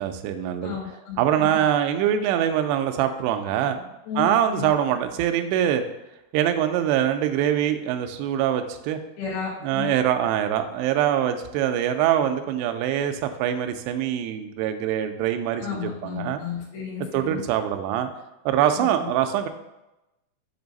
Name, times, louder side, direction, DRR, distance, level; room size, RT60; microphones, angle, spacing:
voice 1, 0.0-0.8 1.2-5.8 6.3-9.0 9.6-16.4 17.0-18.1 18.5-19.5, right 10 dB, 85° right, 7 dB, 2.4 m, -24 dB
voice 2, 0.6-1.5 4.1-4.7 9.2-9.9 15.6-17.4 18.8-18.9, left 8 dB, 80° left, -4 dB, 1.6 m, -33 dB
7.0 x 2.7 x 5.2 m, 0.96 s
omnidirectional pair, 5.4 m